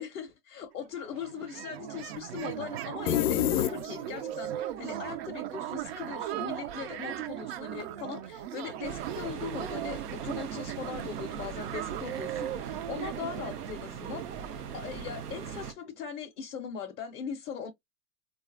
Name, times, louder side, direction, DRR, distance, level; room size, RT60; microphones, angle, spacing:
voice 1, 0.0-17.7, left 7 dB, 20° left, 0.5 m, -40 dB
sound 1, 0.7-0.8 1.0-15.6, right 12 dB, 45° right, 0.4 m, -38 dB
sound 2, 3.1-4.3, left 12 dB, 75° left, 0.5 m, -27 dB
sound 3, 8.8-15.7, right 7 dB, 85° right, 0.8 m, -40 dB
4.6 x 2.3 x 2.3 m
hypercardioid pair, 115°, 45 cm